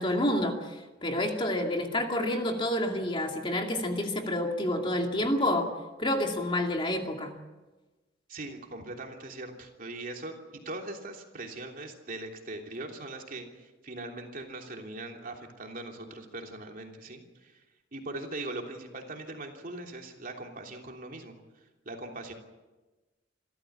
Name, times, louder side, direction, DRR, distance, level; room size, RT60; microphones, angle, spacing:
voice 1, 0.0-5.7 6.0-7.3, left 1 dB, 25° left, 2 dB, 2.5 m, -29 dB
voice 2, 8.3-17.6 17.9-21.3 21.8-22.3, right 2 dB, 45° right, 2 dB, 3.2 m, -41 dB
27.0 x 13.5 x 8.6 m, 1.2 s
head